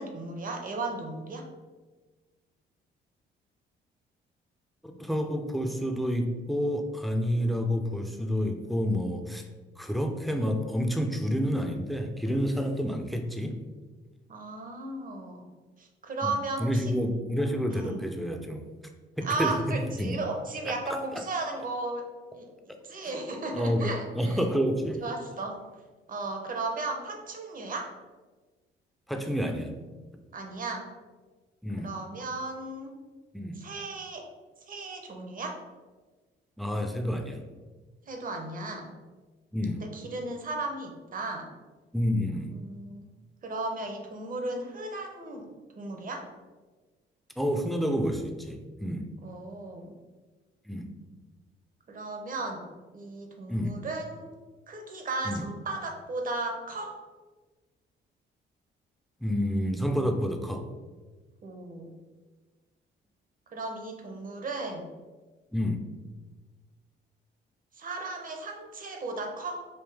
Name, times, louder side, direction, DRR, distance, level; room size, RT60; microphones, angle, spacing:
voice 1, 0.0-1.5 14.3-15.4 15.8-16.9 17.7-18.0 19.2-22.0 22.3-24.4 25.0-25.6 26.1-27.9 30.3-30.9 31.8-33.0 33.6-34.3 34.7-35.6 38.1-39.0 39.8-41.5 42.6-43.1 43.4-45.5 45.8-46.3 49.2-49.9 51.9-52.7 52.9-54.3 54.7-57.0 61.4-61.9 63.5-64.9 67.8-69.7, right 2 dB, 45° right, 3 dB, 0.9 m, -35 dB
voice 2, 4.8-9.4 9.8-13.6 16.2-16.3 16.6-18.7 19.2-20.2 20.7-21.2 23.5-25.0 29.1-29.7 31.6-31.9 33.3-33.6 36.6-37.4 39.5-39.8 41.9-42.5 47.4-49.1 50.7-50.9 53.5-53.8 55.2-55.4 59.2-60.6 65.5-65.8, equal, ahead, 4 dB, 0.5 m, -29 dB
5.2 x 2.7 x 3.4 m, 1.3 s
cardioid pair, 90°, 20 cm